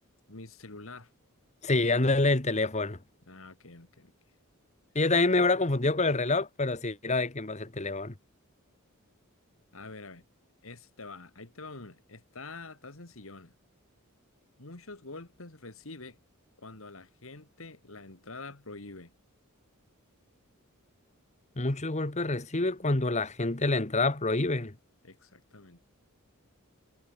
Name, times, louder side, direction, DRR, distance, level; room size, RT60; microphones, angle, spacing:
voice 1, 0.3-1.1 3.3-4.1 9.7-10.2 10.6-13.5 14.6-16.2 16.6-19.1 25.0-25.8, left 3 dB, 65° left, 2.5 m, -46 dB
voice 2, 1.6-3.0 4.9-8.1 21.6-24.7, left 2 dB, 30° left, 1.5 m, -27 dB
head